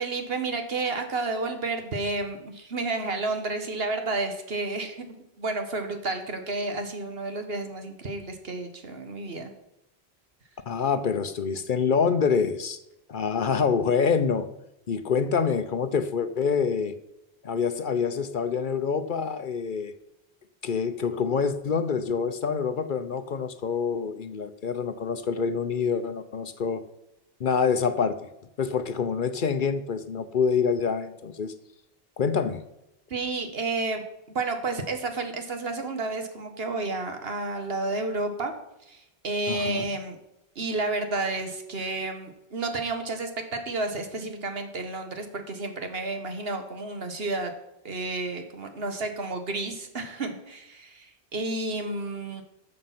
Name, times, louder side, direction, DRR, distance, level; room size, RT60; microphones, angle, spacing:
voice 1, 0.0-5.1 5.4-9.5 33.1-38.5 38.9-40.2 40.5-47.5 47.8-52.4, right 3 dB, 70° right, 6 dB, 1.6 m, -31 dB
voice 2, 10.7-12.8 13.1-14.5 14.9-16.9 17.4-19.9 20.6-26.8 27.4-28.3 28.6-31.5 32.2-32.6 39.5-39.8, left 6 dB, 55° left, 11 dB, 0.8 m, -26 dB
13.0 x 6.6 x 5.9 m, 0.89 s
omnidirectional pair, 1.0 m